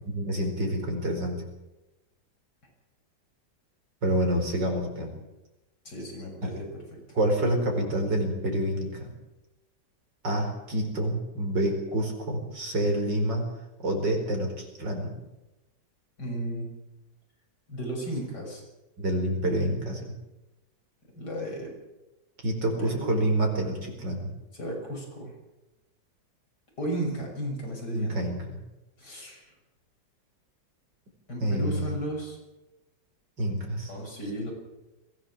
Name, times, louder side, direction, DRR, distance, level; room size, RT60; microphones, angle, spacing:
voice 1, 0.1-1.4 4.0-5.1 6.4-6.5 7.1-9.1 10.2-13.4 13.8-15.2 19.0-20.1 22.4-24.3 27.9-28.6 31.4-32.0 33.4-33.9, right 1 dB, 80° right, 2 dB, 5.2 m, -27 dB
voice 2, 5.9-7.0 16.2-16.7 17.7-18.6 21.1-21.7 22.8-23.1 24.5-25.3 26.8-28.3 29.0-29.5 31.3-32.4 33.9-34.5, right 1 dB, 65° left, 0 dB, 7.0 m, -34 dB
22.0 x 16.0 x 7.4 m, 1.0 s
omnidirectional pair, 1.9 m